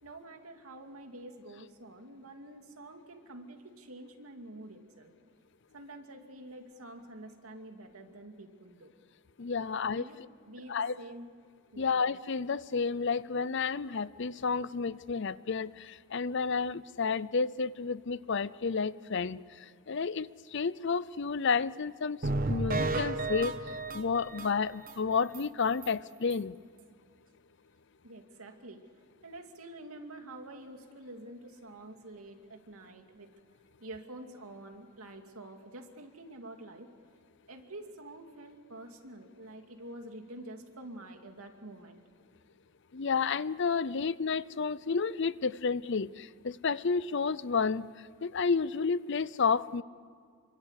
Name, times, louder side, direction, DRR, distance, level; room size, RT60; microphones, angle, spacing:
voice 1, 0.0-5.1 5.7-8.9 9.6-11.3 11.7-12.0 28.0-28.8 29.2-33.3 33.8-36.9 37.5-42.0, right 1 dB, 85° right, 4 dB, 2.6 m, -48 dB
voice 2, 9.4-10.0 10.7-10.9 11.8-15.7 16.1-19.4 19.9-20.3 20.5-22.2 22.5-23.5 23.9-26.5 42.9-46.1 46.4-47.9 48.2-49.8, left 5 dB, 55° left, 18 dB, 0.6 m, -30 dB
sound 1, 22.2-24.9 25.3-25.4 25.8-25.9 26.3-26.4, right 2 dB, 40° right, 1.2 m, -33 dB
26.5 x 24.0 x 8.3 m, 2.1 s
head